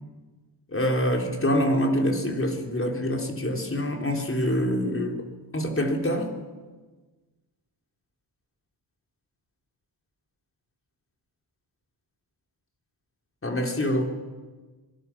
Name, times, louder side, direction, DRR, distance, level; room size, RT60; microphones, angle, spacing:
voice 1, 0.7-5.2 5.5-6.3 13.4-14.0, equal, 30° left, 2 dB, 4.1 m, -25 dB
25.0 x 21.0 x 6.3 m, 1.3 s
cardioid pair, 90°, 45 cm